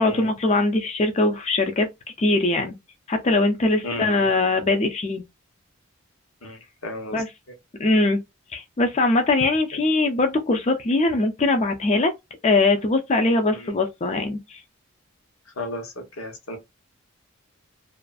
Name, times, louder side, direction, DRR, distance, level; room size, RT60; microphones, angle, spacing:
voice 1, 0.0-1.9 2.2-2.8 3.1-5.2 7.1-7.3 7.8-8.2 8.5-12.1 12.4-14.6, left 2 dB, 30° left, 0.4 m, -21 dB
voice 2, 3.8-4.3 6.4-7.2 15.6-16.6, left 1 dB, 80° left, 0.9 m, -34 dB
2.4 x 2.4 x 2.3 m
head